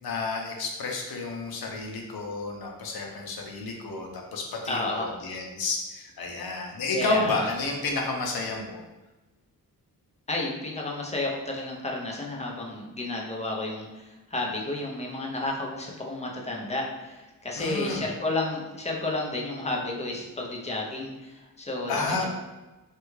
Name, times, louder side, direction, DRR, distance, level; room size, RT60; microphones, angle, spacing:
voice 1, 0.0-8.8 17.6-18.1 21.9-22.3, left 3 dB, 80° left, 1 dB, 0.7 m, -31 dB
voice 2, 4.7-5.1 6.9-7.3 10.3-22.2, left 2 dB, 20° left, -1 dB, 0.5 m, -32 dB
3.3 x 2.3 x 3.1 m, 1.1 s
wide cardioid pair, 115°, 36 cm